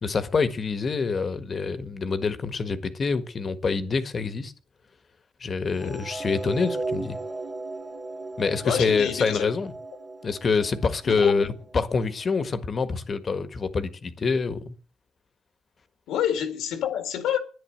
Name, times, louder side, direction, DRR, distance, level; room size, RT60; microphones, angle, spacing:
voice 1, 0.0-4.5 5.4-7.2 8.4-9.7 10.2-14.7, left 4 dB, 40° left, 1.6 m, -26 dB
sound 1, 5.8-12.1, right 3 dB, 35° right, 2.4 m, -36 dB
voice 2, 8.6-9.5 11.1-11.4 16.1-17.4, left 9 dB, 90° left, 2.2 m, -28 dB
10.5 x 10.0 x 8.0 m
cardioid pair, 90°, 0 cm